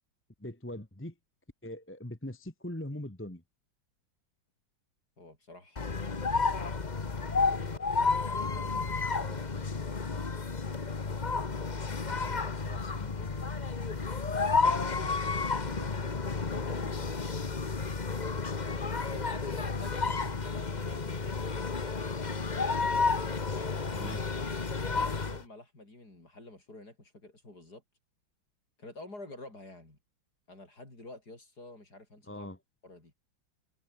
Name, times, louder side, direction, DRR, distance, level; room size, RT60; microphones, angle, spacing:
voice 1, 0.4-1.1 1.6-3.4 24.0-24.2 32.3-32.6, left 1 dB, 5° left, 1.7 m, -40 dB
voice 2, 5.2-6.4 7.1-10.3 11.8-13.4 15.0-15.9 16.4-17.6 19.1-21.5 22.8-24.2 24.4-27.8 28.8-30.0 30.5-32.5 32.8-33.1, left 2 dB, 50° left, 7.5 m, -50 dB
sound 1, 5.8-25.4, left 4 dB, 25° left, 1.2 m, -31 dB
omnidirectional pair, 2.2 m